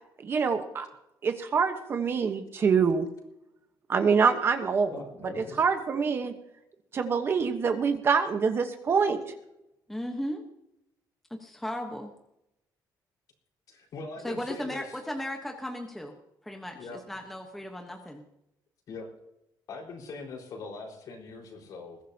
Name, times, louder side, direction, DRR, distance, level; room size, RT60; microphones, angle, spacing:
voice 1, 0.2-0.9 1.2-3.1 3.9-6.3 6.9-9.2, right 5 dB, 30° right, 7 dB, 1.1 m, -25 dB
voice 2, 4.9-5.6 13.7-14.9 16.7-17.0 18.9-19.1 19.7-22.0, left 4 dB, 55° left, 0 dB, 4.6 m, -41 dB
voice 3, 9.9-10.4 11.3-12.1 14.2-16.2 16.4-18.2, equal, 5° left, 2 dB, 1.1 m, -36 dB
21.5 x 15.0 x 2.8 m, 0.85 s
cardioid pair, 180°, 8 cm